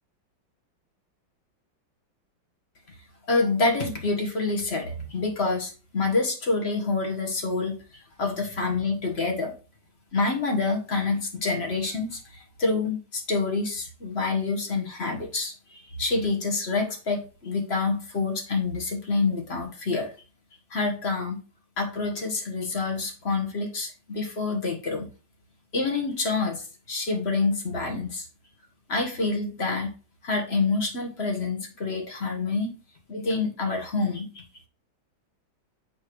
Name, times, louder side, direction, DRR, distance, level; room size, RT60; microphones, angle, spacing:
voice 1, 3.3-9.5 10.1-20.1 20.7-21.4 21.8-25.1 25.7-28.3 28.9-29.9 30.2-32.7 33.1-34.4, left 3 dB, 35° left, 2 dB, 1.7 m, -27 dB
7.5 x 3.5 x 6.3 m, 0.34 s
omnidirectional pair, 2.2 m